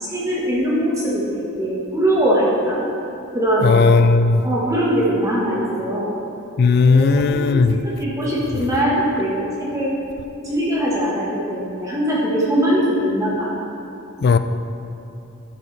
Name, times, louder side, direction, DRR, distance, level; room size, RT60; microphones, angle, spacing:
voice 1, 0.0-2.9 3.3-3.8 4.4-6.1 6.9-7.6 7.8-9.9 10.4-13.5, equal, 15° right, -6 dB, 1.3 m, -21 dB
voice 2, 3.6-4.4 6.6-7.8 14.2-14.4, left 4 dB, 50° left, 10 dB, 0.3 m, -15 dB
11.5 x 7.0 x 3.2 m, 2.7 s
head